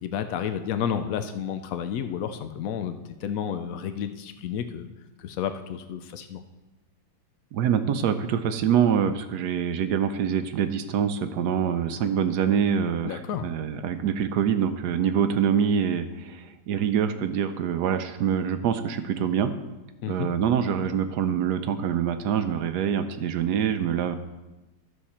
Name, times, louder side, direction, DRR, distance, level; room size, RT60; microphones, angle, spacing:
voice 1, 0.0-4.9 5.2-6.4 13.0-13.5 20.0-20.3, left 8 dB, 80° left, 9 dB, 0.7 m, -31 dB
voice 2, 7.5-19.5 20.1-24.2, right 8 dB, 70° right, 10 dB, 1.1 m, -25 dB
13.0 x 6.6 x 4.3 m, 1.1 s
omnidirectional pair, 2.1 m